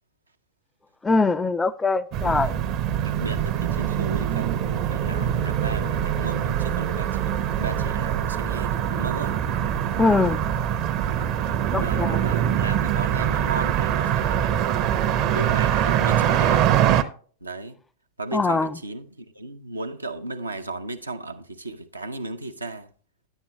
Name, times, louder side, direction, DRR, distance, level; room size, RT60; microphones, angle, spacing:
voice 1, 1.0-2.5 10.0-10.4 11.7-12.2 18.3-18.7, left 3 dB, 10° left, 0.4 m, -22 dB
sound 1, 2.1-17.0, right 10 dB, 40° right, 0.6 m, -23 dB
voice 2, 3.0-9.4 10.1-10.4 11.7-15.0 15.3-16.8 17.4-17.8 18.2-22.9, right 2 dB, 80° right, 0.6 m, -35 dB
9.8 x 9.0 x 2.9 m
figure-of-eight pair, 90°, 0 cm